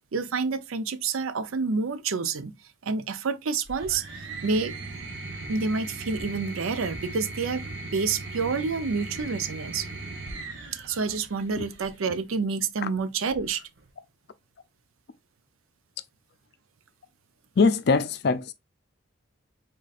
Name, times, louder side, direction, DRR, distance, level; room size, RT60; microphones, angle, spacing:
voice 1, 0.1-2.5 2.8-4.0 4.4-4.7 5.5-7.7 7.9-9.9 10.8-13.6, right 4 dB, 85° right, 0.5 m, -28 dB
sound 1, 3.6-12.1 13.3-13.9, right 2 dB, 60° right, 1.1 m, -39 dB
voice 2, 17.6-18.5, left 4 dB, 50° left, 0.4 m, -22 dB
4.1 x 3.7 x 2.4 m
head